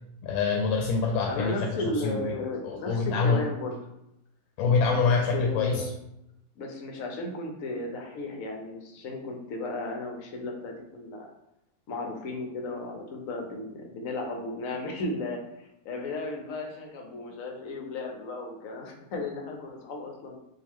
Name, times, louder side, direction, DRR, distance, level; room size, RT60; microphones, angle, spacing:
voice 1, 0.2-2.3 2.6-3.4 4.6-5.9, left 4 dB, 85° left, 1 dB, 1.4 m, -25 dB
voice 2, 1.2-3.8 5.0-5.9 6.6-11.3 11.9-20.4, left 2 dB, 65° left, 2 dB, 0.8 m, -35 dB
5.8 x 2.5 x 3.5 m, 0.84 s
omnidirectional pair, 2.2 m